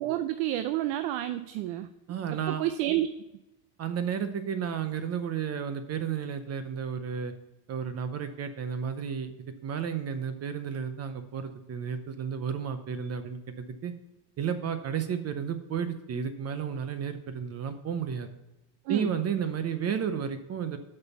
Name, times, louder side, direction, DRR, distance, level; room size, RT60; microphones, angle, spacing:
voice 1, 0.0-1.9 2.5-3.1 18.9-19.1, right 13 dB, 65° right, 10 dB, 0.7 m, -29 dB
voice 2, 2.1-2.6 3.8-7.3 7.7-9.3 9.6-13.9 14.4-18.3 18.9-20.8, right 7 dB, 30° right, 10 dB, 0.7 m, -32 dB
8.0 x 5.5 x 5.7 m, 0.96 s
cardioid pair, 135°, 50 cm